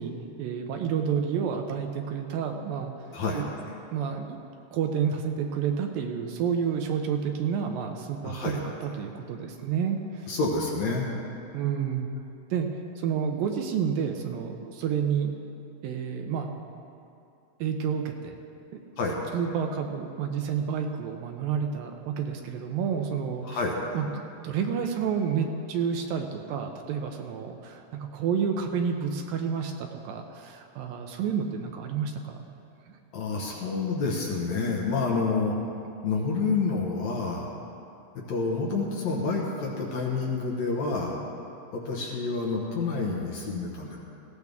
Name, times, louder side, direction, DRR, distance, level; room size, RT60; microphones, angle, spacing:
voice 1, 0.0-3.4 3.9-4.4 4.7-10.3 11.5-12.1 12.5-15.3 15.8-16.5 17.6-18.4 18.7-18.8 19.3-23.6 23.9-24.1 24.4-32.5 32.9-33.0, right 7 dB, 75° right, 4 dB, 2.4 m, -30 dB
voice 2, 8.2-8.6 10.3-11.1 19.0-19.1 23.4-23.7 33.1-35.6 36.0-37.5 38.2-41.2 41.7-44.0, left 4 dB, 60° left, -2 dB, 2.1 m, -28 dB
19.0 x 15.5 x 3.6 m, 2.7 s
omnidirectional pair, 4.5 m